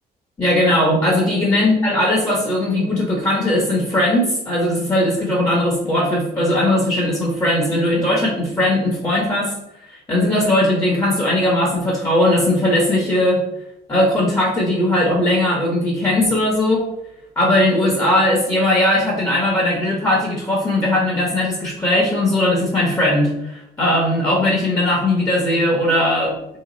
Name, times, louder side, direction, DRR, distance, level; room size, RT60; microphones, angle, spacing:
voice 1, 0.4-9.5 9.9-13.4 13.9-16.8 17.4-26.3, left 1 dB, 20° left, -4 dB, 1.0 m, -18 dB
2.9 x 2.4 x 3.9 m, 0.84 s
cardioid pair, 110°, 17 cm